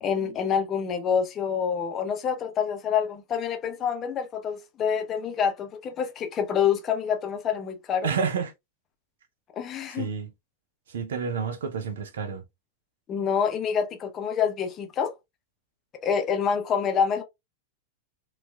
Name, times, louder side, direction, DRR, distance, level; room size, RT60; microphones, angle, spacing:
voice 1, 0.0-8.1 9.6-10.1 13.1-15.1 16.0-17.2, left 7 dB, 30° left, 0.7 m, -27 dB
voice 2, 8.0-8.5 10.0-10.3 10.9-12.4, right 6 dB, 60° right, 0.6 m, -29 dB
4.3 x 2.4 x 2.2 m
figure-of-eight pair, 90°, 0 cm